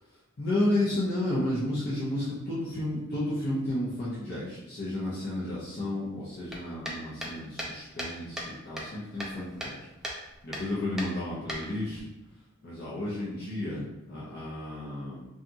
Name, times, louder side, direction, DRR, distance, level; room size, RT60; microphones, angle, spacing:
voice 1, 0.4-9.9 10.4-12.0 12.6-15.3, left 1 dB, 50° left, -8 dB, 0.6 m, -32 dB
sound 1, 6.5-8.5 8.8-9.8 10.0-10.2 10.5-10.7 11.0-12.0, equal, ahead, 0.3 m, -37 dB
2.7 x 2.4 x 2.6 m, 1.0 s
head